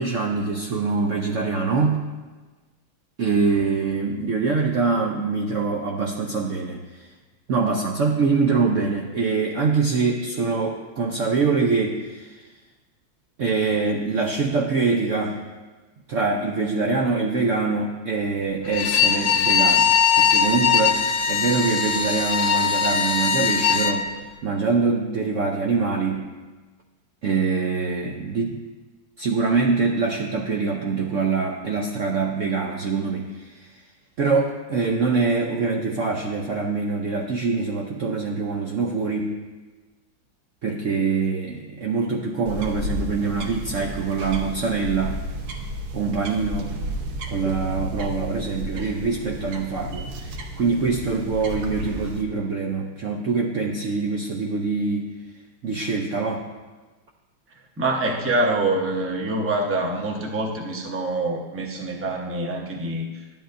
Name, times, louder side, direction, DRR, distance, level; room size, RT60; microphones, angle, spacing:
voice 1, 0.0-2.0 3.2-7.1 7.5-12.4 13.4-15.4 16.1-24.2 24.4-26.3 27.2-28.6 29.2-33.7 34.2-39.4 40.6-45.2 45.9-46.8 47.3-55.1 55.6-56.5, right 4 dB, 85° right, 0 dB, 0.6 m, -24 dB
Bowed string instrument, 18.7-24.0, left 7 dB, 85° left, 1.5 m, -20 dB
sound 1, 42.5-52.2, equal, 55° right, 1.3 m, -32 dB
voice 2, 57.8-63.2, right 2 dB, 15° right, -1 dB, 0.4 m, -25 dB
12.5 x 11.0 x 2.6 m, 1.3 s
omnidirectional pair, 2.2 m